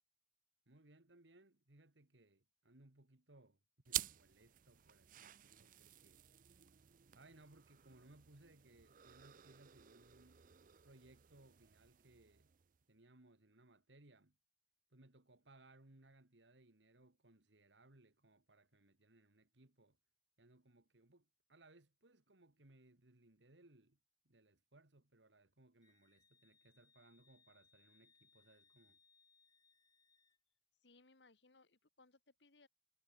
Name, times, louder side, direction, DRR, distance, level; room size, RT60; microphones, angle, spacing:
voice 1, 0.7-3.6 3.9-6.2 7.1-10.4 10.8-12.5 12.9-14.4 14.9-20.0 20.4-24.0 24.2-29.0, right 2 dB, 90° right, 2.1 m, -66 dB
sound 1, 3.9-12.8, right 13 dB, 50° right, 0.5 m, -50 dB
Wind instrument woodwind instrument, 25.8-30.4, left 5 dB, 20° left, 3.0 m, -73 dB
voice 2, 30.8-32.7, left 3 dB, 75° left, 2.0 m, -67 dB
head